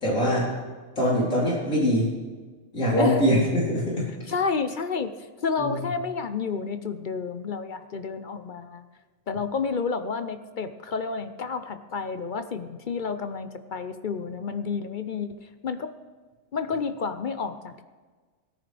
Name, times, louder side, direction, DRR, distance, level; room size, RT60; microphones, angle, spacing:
voice 1, 0.0-0.5 1.0-2.1 2.7-4.1 5.6-5.9, equal, 85° left, -6 dB, 4.2 m, -23 dB
voice 2, 4.3-5.1 5.4-8.8 9.3-15.9 16.5-17.8, left 5 dB, 50° left, 10 dB, 0.7 m, -30 dB
17.0 x 14.0 x 3.4 m, 1.4 s
omnidirectional pair, 1.4 m